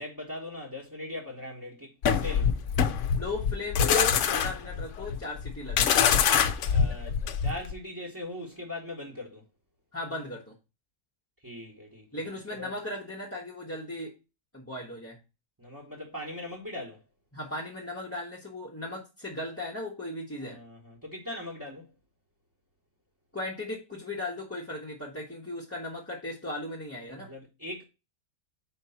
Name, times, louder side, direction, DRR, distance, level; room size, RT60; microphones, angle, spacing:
voice 1, 0.0-2.6 6.7-9.4 11.4-12.2 12.5-12.7 15.6-17.0 20.4-21.9 27.2-27.8, left 1 dB, 15° right, 1.1 m, -40 dB
sound 1, 2.0-7.7, left 7 dB, 60° left, 0.9 m, -25 dB
voice 2, 3.1-6.1 9.9-10.5 12.1-14.1 14.5-15.2 17.3-20.6 23.3-27.3, left 1 dB, 10° left, 0.9 m, -37 dB
4.6 x 4.5 x 5.6 m
omnidirectional pair, 1.6 m